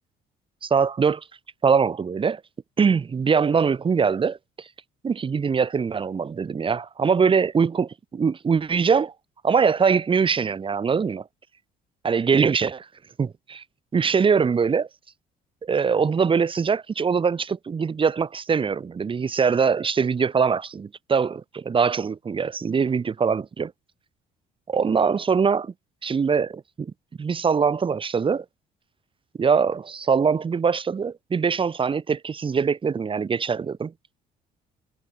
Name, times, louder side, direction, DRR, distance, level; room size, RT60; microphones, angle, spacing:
voice 1, 0.6-1.2 1.6-2.4 2.8-4.7 5.0-9.1 9.4-11.2 12.0-12.9 13.2-13.6 13.9-14.9 15.6-23.7 24.7-25.7 26.0-26.9 27.2-28.5 29.4-33.9, right 6 dB, 30° right, 2.2 m, -22 dB
cardioid pair, 110°, 17 cm